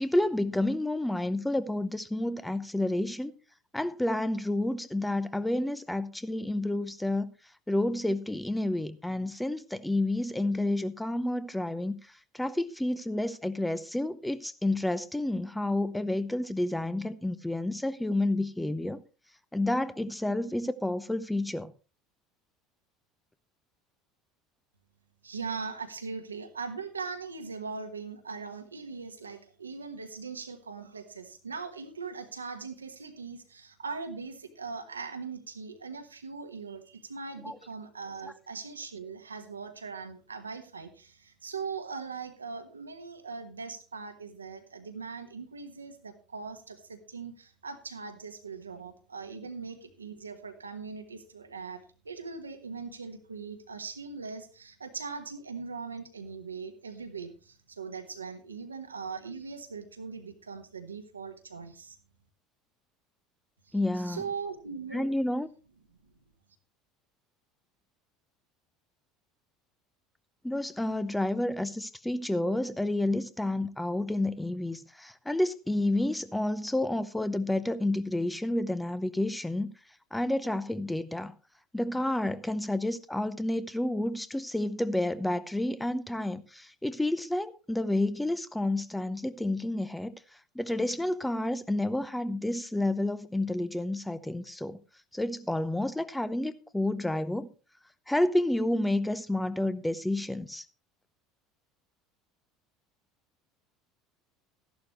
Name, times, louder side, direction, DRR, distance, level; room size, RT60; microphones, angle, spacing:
voice 1, 0.0-3.3 3.7-7.3 7.7-19.0 19.5-21.7 37.4-37.6 63.7-64.2 64.9-65.5 70.4-79.7 80.1-81.3 81.7-90.1 90.5-94.8 95.1-97.5 98.1-100.7, left 1 dB, 5° left, 0.8 m, -30 dB
voice 2, 25.2-62.0 63.7-65.1 66.0-66.1, right 5 dB, 80° right, 1.3 m, -40 dB
14.0 x 11.5 x 3.1 m
figure-of-eight pair, 65°, 0 cm